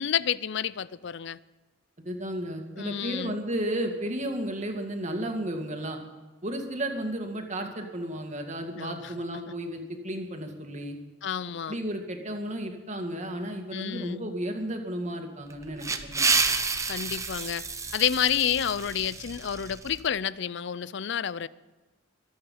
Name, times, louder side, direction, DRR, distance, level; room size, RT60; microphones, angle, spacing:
voice 1, 0.0-1.4 2.8-3.4 8.8-9.1 11.2-11.8 13.7-14.3 16.9-17.6 17.9-21.5, left 9 dB, 65° left, 0.5 m, -29 dB
voice 2, 2.0-6.0 6.4-11.0 11.7-16.3, right 1 dB, 40° right, 2.2 m, -33 dB
sound 1, 15.5-20.0, right 4 dB, 15° right, 1.0 m, -29 dB
24.0 x 8.7 x 5.5 m
head